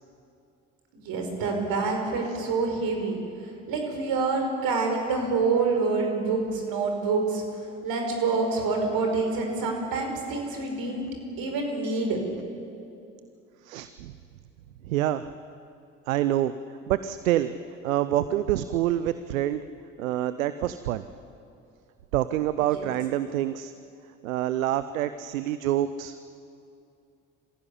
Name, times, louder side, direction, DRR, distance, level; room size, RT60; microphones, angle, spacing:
voice 1, 0.9-3.2 3.7-7.4 7.8-11.1 11.4-12.2, right 4 dB, 60° right, 3 dB, 5.3 m, -27 dB
voice 2, 13.6-14.1 14.8-15.3 16.1-17.5 17.8-19.7 20.0-21.0 22.1-23.7 24.2-26.2, right 12 dB, 80° right, 13 dB, 0.7 m, -27 dB
26.0 x 15.5 x 9.9 m, 2.6 s
figure-of-eight pair, 50°, 40 cm